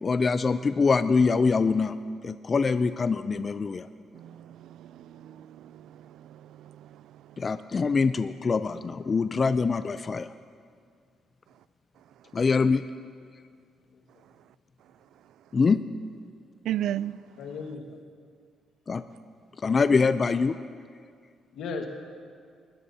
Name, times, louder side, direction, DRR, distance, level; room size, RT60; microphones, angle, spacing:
voice 1, 0.0-2.0 2.2-3.9 7.4-10.3 12.3-12.8 15.5-15.8 18.9-19.0 19.6-20.6, left 4 dB, 35° left, 0.4 m, -24 dB
voice 2, 4.1-7.4 16.6-17.2, right 12 dB, 80° right, 0.3 m, -36 dB
voice 3, 13.9-14.2 17.4-18.0 21.5-21.9, left 4 dB, 80° left, 1.6 m, -37 dB
21.0 x 17.0 x 2.8 m
cardioid pair, 90°, 0 cm